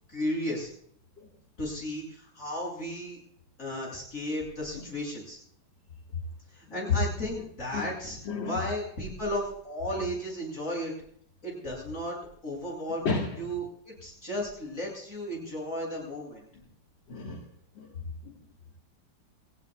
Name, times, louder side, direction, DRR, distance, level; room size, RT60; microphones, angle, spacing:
voice 1, 0.1-0.7 1.6-3.2 3.6-5.4 6.5-8.2 8.4-10.9 11.4-12.2 12.4-13.1 13.4-16.4, left 1 dB, 40° left, -3 dB, 8.2 m, -34 dB
voice 2, 8.3-8.6 13.1-13.3 17.1-17.4 17.8-17.9, left 3 dB, 75° left, -1 dB, 2.5 m, -31 dB
29.5 x 15.5 x 2.4 m, 0.67 s
omnidirectional pair, 2.1 m